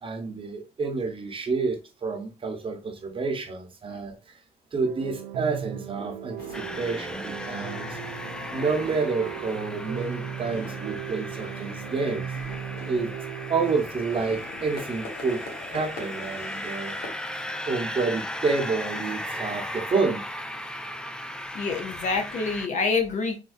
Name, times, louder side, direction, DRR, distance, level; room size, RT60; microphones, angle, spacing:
voice 1, 0.0-4.4 4.7-8.0 8.5-12.2 12.9-13.1 13.5-15.4 15.7-17.0 17.7-20.2, right 4 dB, 30° right, 0.9 m, -29 dB
sound 1, 4.8-13.8, right 9 dB, 90° right, 0.4 m, -37 dB
sound 2, 6.4-17.1, left 2 dB, 70° left, 1.4 m, -44 dB
sound 3, 6.5-22.7, left 1 dB, 5° left, 0.3 m, -36 dB
voice 2, 21.5-23.4, left 4 dB, 45° left, 0.7 m, -26 dB
3.6 x 2.7 x 2.5 m
cardioid pair, 110°, 17 cm